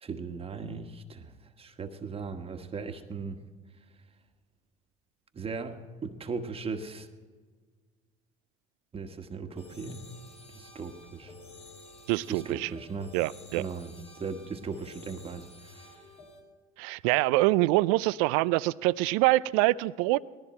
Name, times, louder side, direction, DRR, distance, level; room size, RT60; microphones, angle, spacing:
voice 1, 0.0-1.3 1.6-3.4 5.3-7.1 8.9-10.0 10.5-11.3 12.3-13.1 13.5-16.0, right 4 dB, 30° right, 1.4 m, -38 dB
sound 1, 9.6-16.4, left 2 dB, 35° left, 4.5 m, -51 dB
voice 2, 12.1-12.7 13.1-13.7 16.8-20.2, right 19 dB, 70° right, 0.4 m, -25 dB
18.5 x 14.0 x 4.4 m
hypercardioid pair, 70°, 18 cm